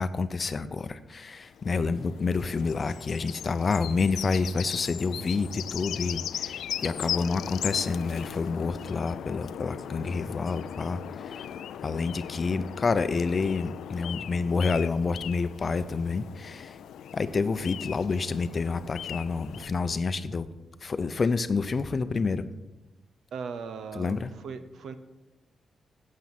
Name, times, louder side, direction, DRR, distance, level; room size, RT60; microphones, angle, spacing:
voice 1, 0.0-11.5 11.8-16.8 17.1-20.5 20.8-22.5 24.0-24.3, left 4 dB, 45° left, 13 dB, 0.6 m, -28 dB
sound 1, 1.5-19.7, left 9 dB, 85° left, 0.3 m, -38 dB
voice 2, 23.3-24.9, right 5 dB, 80° right, 10 dB, 0.7 m, -38 dB
9.1 x 7.5 x 5.9 m, 1.0 s
cardioid pair, 75°, 0 cm